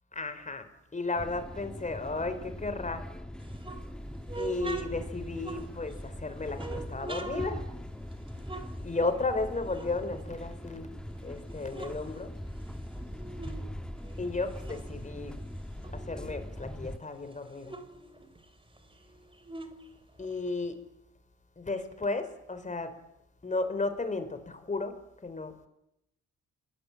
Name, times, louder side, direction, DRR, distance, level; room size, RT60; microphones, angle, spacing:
voice 1, 0.1-0.7 0.9-3.0 4.4-7.6 8.8-10.9 11.2-12.3 14.2-15.3 16.1-17.7 20.2-20.8 21.6-22.9 23.4-25.0 25.2-25.5, left 3 dB, 25° left, 10 dB, 4.4 m, -34 dB
sound 1, 1.2-17.0, equal, 5° left, 1.6 m, -41 dB
sound 2, 3.4-6.1 6.5-9.4 9.7-11.0 11.4-13.7 14.0-16.5 16.9-17.0 17.2-20.7, right 3 dB, 15° right, 3.2 m, -44 dB
29.5 x 20.5 x 9.0 m, 0.85 s
cardioid pair, 90°, 30 cm